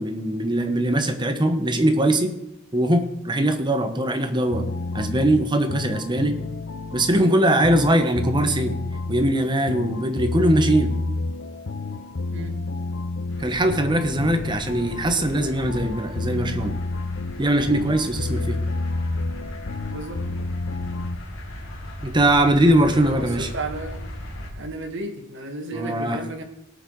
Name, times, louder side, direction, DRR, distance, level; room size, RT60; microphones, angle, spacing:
voice 1, 0.0-2.3 2.7-4.6 4.9-6.4 6.9-8.7 9.1-10.9 13.4-16.8 17.4-18.6 22.0-23.5 25.7-26.2, right 1 dB, 20° right, 7 dB, 1.1 m, -21 dB
sound 1, 4.5-21.2, left 3 dB, 60° left, 0.6 m, -30 dB
sound 2, 13.3-24.5, equal, 75° left, 3.1 m, -37 dB
voice 2, 19.9-20.2 22.8-24.0 24.5-26.4, right 2 dB, 60° right, 2 dB, 1.7 m, -33 dB
18.0 x 7.1 x 4.7 m, 0.85 s
head